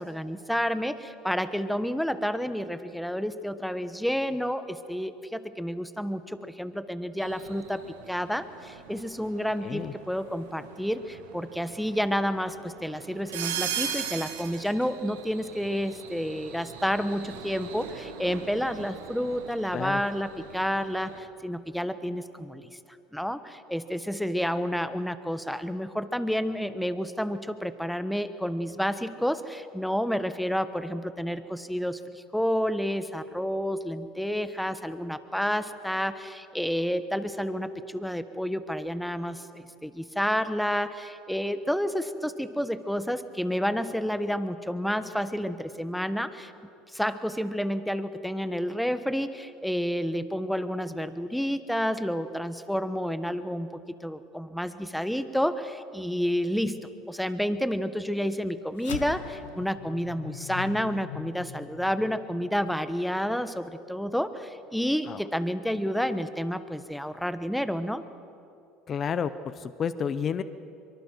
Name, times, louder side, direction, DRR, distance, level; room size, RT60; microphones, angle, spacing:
voice 1, 0.0-7.8 8.1-22.7 23.1-46.5 46.9-68.0, equal, ahead, 11 dB, 1.2 m, -30 dB
sh Seattle Trolley By, 7.2-21.2, right 8 dB, 85° right, 1.7 m, -40 dB
voice 2, 9.6-9.9 19.7-20.0 65.1-65.2 68.9-70.4, left 7 dB, 40° left, 14 dB, 0.8 m, -30 dB
sound 1, 58.8-63.4, left 9 dB, 85° left, 0.8 m, -41 dB
24.0 x 23.5 x 4.6 m, 2.6 s
hypercardioid pair, 75°, 0 cm